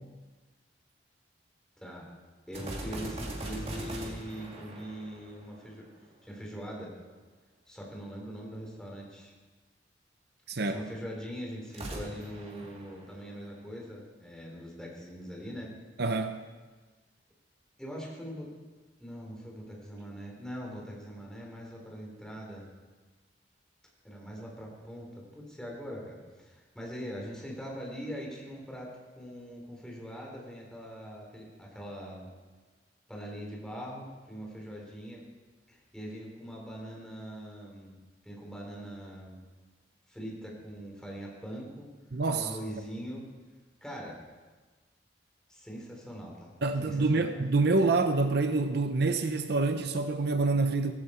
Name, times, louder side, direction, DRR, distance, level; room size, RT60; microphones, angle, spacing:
voice 1, 1.8-2.1 2.5-5.9 6.2-6.9 7.7-9.3 10.6-15.7 17.8-18.5 19.0-22.7 24.0-32.3 33.1-35.2 35.7-37.9 38.2-39.4 40.1-41.9 42.3-43.2 43.8-44.2 45.5-46.5 46.8-47.3, equal, 5° left, -2 dB, 3.6 m, -42 dB
sound 1, 2.5-6.0 11.6-13.7, right 1 dB, 35° right, 2.3 m, -40 dB
voice 2, 10.5-10.8 16.0-16.4 42.1-42.5 46.6-50.9, right 3 dB, 65° right, 8 dB, 0.7 m, -27 dB
17.5 x 15.0 x 4.4 m, 1.3 s
head